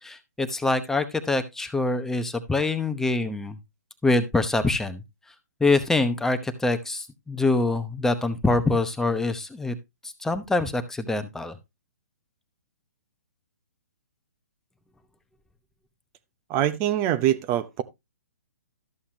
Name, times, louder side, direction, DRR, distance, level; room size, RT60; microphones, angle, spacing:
voice 1, 0.0-3.6 4.0-5.0 5.6-9.8 10.2-11.6, left 2 dB, 5° left, 0.9 m, -25 dB
voice 2, 16.5-17.8, right 12 dB, 25° right, 0.7 m, -24 dB
13.0 x 7.1 x 2.8 m
hypercardioid pair, 140°, 9 cm